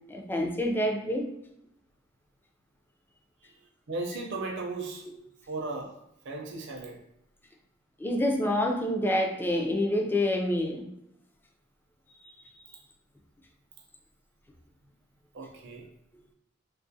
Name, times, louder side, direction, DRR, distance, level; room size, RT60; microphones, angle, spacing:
voice 1, 0.1-1.3 8.0-10.9, left 1 dB, 10° left, 3 dB, 0.3 m, -27 dB
voice 2, 3.9-5.1 5.5-5.9 6.2-7.0 15.3-15.9, right 3 dB, 60° right, 1 dB, 0.5 m, -36 dB
3.6 x 2.4 x 2.6 m, 0.79 s
head